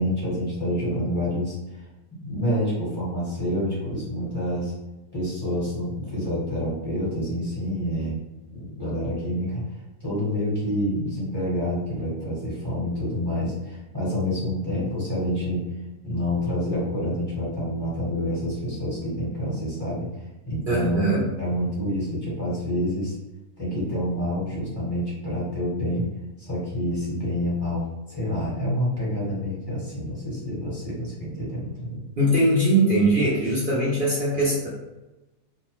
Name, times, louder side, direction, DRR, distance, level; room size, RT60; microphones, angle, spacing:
voice 1, 0.0-1.8 2.2-4.7 5.1-8.2 8.5-9.6 10.0-15.6 16.0-20.1 20.4-21.0 21.4-23.2 23.6-26.0 26.4-32.0, equal, 15° left, -8 dB, 1.0 m, -27 dB
voice 2, 20.7-21.2 32.2-34.7, right 1 dB, 60° right, -7 dB, 0.5 m, -21 dB
2.7 x 2.1 x 2.9 m, 1.0 s
omnidirectional pair, 1.7 m